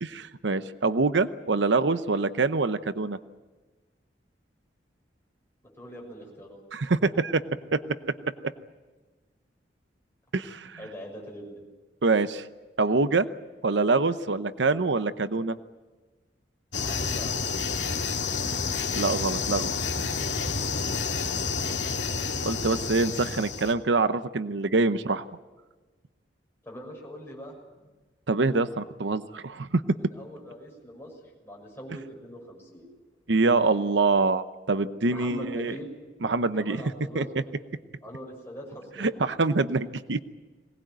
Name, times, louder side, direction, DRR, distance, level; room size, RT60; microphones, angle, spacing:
voice 1, 0.0-3.2 6.7-7.4 7.7-7.8 10.3-10.8 12.0-12.5 12.8-13.3 13.6-15.6 18.9-19.7 22.4-25.2 28.3-29.8 33.3-35.8 36.2-36.8 37.1-37.3 39.0-40.2, right 3 dB, 90° right, 12 dB, 0.8 m, -25 dB
voice 2, 5.8-6.6 10.8-11.6 16.8-17.6 21.0-21.7 26.6-27.5 29.9-31.1 31.4-32.9 35.1-35.9 36.4-37.4 38.0-39.2, equal, 15° left, -1 dB, 6.6 m, -42 dB
sound 1, 16.7-23.7, left 5 dB, 85° left, 2.3 m, -29 dB
22.0 x 19.0 x 9.1 m, 1.3 s
head